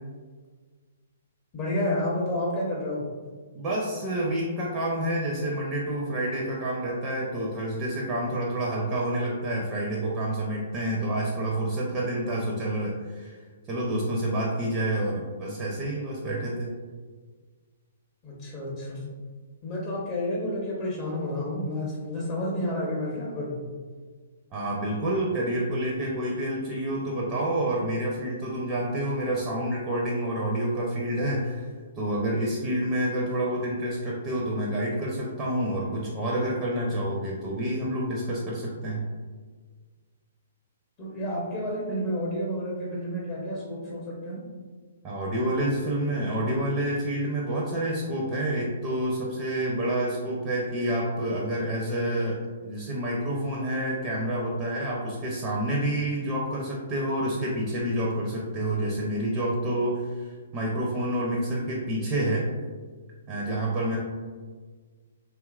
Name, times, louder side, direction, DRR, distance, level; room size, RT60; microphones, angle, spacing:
voice 1, 1.5-3.0 18.2-19.0 19.6-23.6 41.0-44.4, left 1 dB, 30° left, -4 dB, 0.5 m, -30 dB
voice 2, 3.5-13.4 13.7-16.7 24.5-31.7 32.0-39.0 45.0-52.4 52.6-62.5 63.3-64.0, right 1 dB, 25° right, -4 dB, 0.5 m, -28 dB
2.8 x 2.3 x 2.3 m, 1.5 s
figure-of-eight pair, 120°, 0 cm